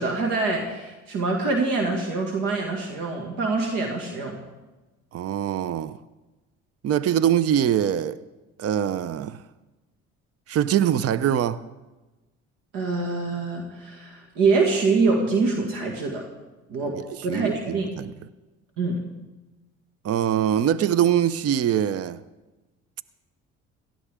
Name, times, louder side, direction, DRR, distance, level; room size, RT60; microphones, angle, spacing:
voice 1, 0.0-4.4 12.7-16.3 16.7-17.0 17.2-17.9 18.8-19.0, right 3 dB, 75° right, 2.1 m, -25 dB
voice 2, 5.1-6.0 6.8-8.2 8.6-9.4 10.5-11.6 17.3-18.1 20.0-22.2, right 10 dB, 45° right, 0.6 m, -23 dB
17.5 x 13.5 x 3.7 m
supercardioid pair, 70°, 34 cm